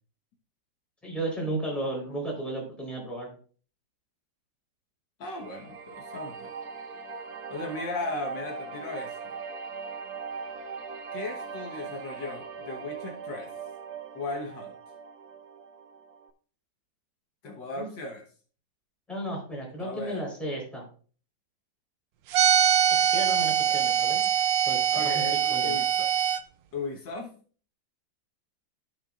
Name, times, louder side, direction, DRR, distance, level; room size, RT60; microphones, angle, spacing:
voice 1, 1.0-3.3 17.8-17.9 19.1-20.8 22.9-24.2 24.7-25.2 25.5-25.8, right 1 dB, ahead, -2 dB, 4.0 m, -34 dB
voice 2, 5.2-6.5 7.5-9.4 11.1-13.5 14.2-14.7 17.4-18.2 19.8-20.2 23.6-23.8 24.9-26.1 26.7-27.4, left 2 dB, 75° left, 1 dB, 2.0 m, -37 dB
sound 1, 5.2-16.3, right 5 dB, 60° right, 1.2 m, -40 dB
sound 2, 22.3-26.4, right 9 dB, 85° right, 1.4 m, -23 dB
15.0 x 5.8 x 2.5 m, 0.41 s
omnidirectional pair, 2.0 m